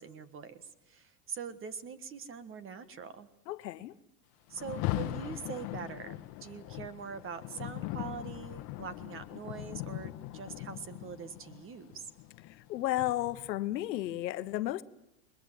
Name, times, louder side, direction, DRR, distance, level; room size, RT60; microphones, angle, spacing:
voice 1, 0.0-3.3 4.5-12.1, right 6 dB, 25° right, 1.5 m, -43 dB
voice 2, 3.5-3.9 12.5-14.8, left 15 dB, 80° left, 1.2 m, -33 dB
Rain, 4.5-13.6, left 16 dB, 45° left, 1.2 m, -40 dB
21.5 x 21.0 x 9.1 m
supercardioid pair, 130°, 49 cm